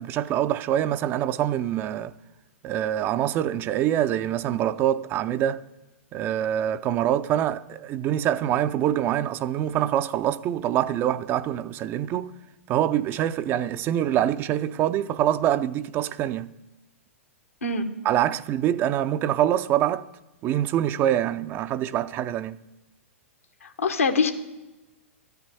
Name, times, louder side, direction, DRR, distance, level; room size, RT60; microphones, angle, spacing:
voice 1, 0.0-2.1 2.6-5.6 6.1-12.3 12.7-16.5 18.0-20.1 20.4-22.6, right 11 dB, 30° right, 0.4 m, -25 dB
voice 2, 23.6-24.3, left 4 dB, 80° left, 1.5 m, -24 dB
14.0 x 5.7 x 9.0 m
figure-of-eight pair, 105°, 7 cm